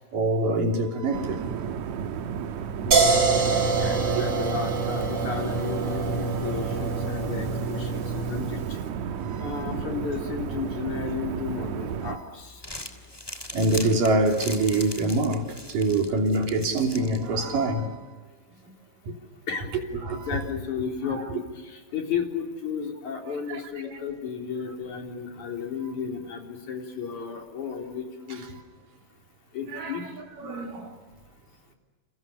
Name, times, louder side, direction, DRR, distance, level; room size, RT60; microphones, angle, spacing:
voice 1, 0.1-1.6 2.8-4.2 9.2-9.7 13.5-18.0 19.1-19.2 20.1-20.3 23.5-23.6 29.7-29.9 30.4-30.9, right 2 dB, 85° right, 4.8 m, -26 dB
sound 1, 1.1-12.2, right 7 dB, 65° right, 2.1 m, -33 dB
sound 2, 2.9-8.7, right 4 dB, 35° right, 3.4 m, -26 dB
voice 2, 3.8-8.8 9.4-12.7 19.5-19.7 20.1-28.4 29.5-30.2, left 6 dB, 65° left, 5.1 m, -33 dB
Crumpling crinkling, 12.4-17.7, left 1 dB, 10° left, 2.4 m, -40 dB
30.0 x 29.0 x 6.8 m
omnidirectional pair, 3.8 m